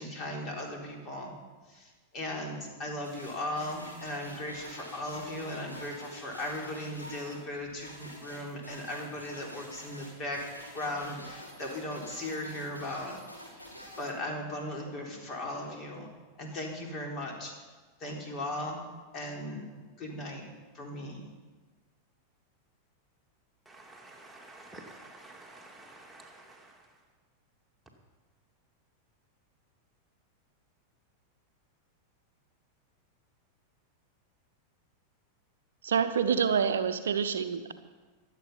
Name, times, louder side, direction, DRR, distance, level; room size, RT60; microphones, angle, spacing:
voice 1, 0.0-1.3 1.7-10.4 10.7-13.2 13.5-13.7 14.0-16.1 16.4-17.5 18.0-18.8 19.1-19.7 20.0-20.4 20.7-21.2, left 1 dB, 30° left, 0 dB, 3.9 m, -37 dB
sound 1, 3.0-14.1, equal, 85° left, 6.2 m, -47 dB
voice 2, 23.6-27.0, right 2 dB, 5° right, -1 dB, 2.4 m, -51 dB
voice 3, 35.8-37.7, right 7 dB, 65° right, 10 dB, 0.7 m, -27 dB
24.0 x 8.3 x 5.5 m, 1.3 s
figure-of-eight pair, 90°, 0 cm